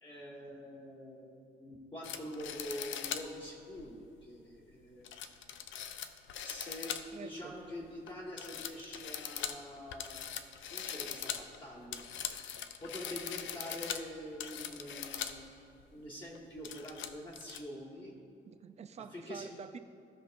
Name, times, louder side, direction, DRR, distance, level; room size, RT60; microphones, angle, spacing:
voice 1, 0.0-5.1 6.4-12.1 12.8-15.5 15.9-18.1 19.0-19.5, equal, 25° left, -4 dB, 1.6 m, -45 dB
sound 1, 2.0-3.3 3.8-3.9 5.0-7.3 7.6-8.1 8.4-15.4 15.8-15.9 16.3-17.6, left 9 dB, 75° left, 0.5 m, -41 dB
voice 2, 7.1-7.6 18.5-19.8, right 7 dB, 35° right, 10 dB, 0.4 m, -47 dB
15.5 x 5.2 x 2.5 m, 2.6 s
cardioid pair, 90°, 20 cm